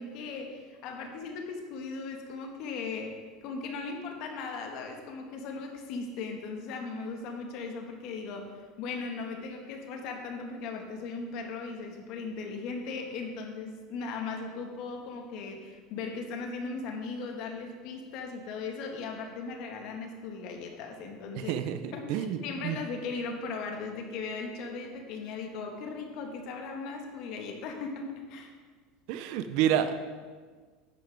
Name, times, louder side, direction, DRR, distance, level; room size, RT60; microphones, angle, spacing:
voice 1, 0.0-3.2 3.4-21.5 21.9-28.5, left 4 dB, 60° left, 3 dB, 1.7 m, -38 dB
voice 2, 21.3-22.4 22.6-22.8 29.1-29.9, right 10 dB, 65° right, 10 dB, 0.8 m, -29 dB
10.5 x 9.0 x 3.6 m, 1.5 s
hypercardioid pair, 95°, 0 cm